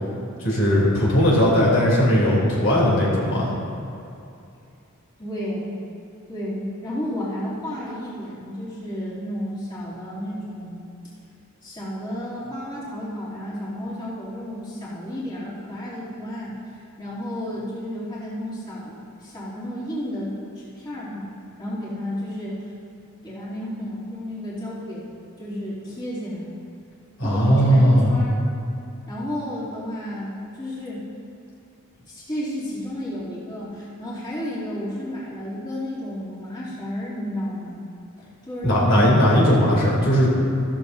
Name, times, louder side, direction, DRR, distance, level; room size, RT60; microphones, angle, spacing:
voice 1, 0.4-3.5 27.2-28.1 38.6-40.3, equal, 65° left, -6 dB, 3.2 m, -18 dB
voice 2, 5.2-5.8 6.3-10.8 11.6-21.3 21.6-22.7 23.2-25.0 25.4-26.5 27.2-28.4 29.1-31.0 32.0-37.8 38.2-39.1, equal, 20° left, -10 dB, 2.9 m, -32 dB
14.5 x 13.5 x 2.7 m, 2.5 s
head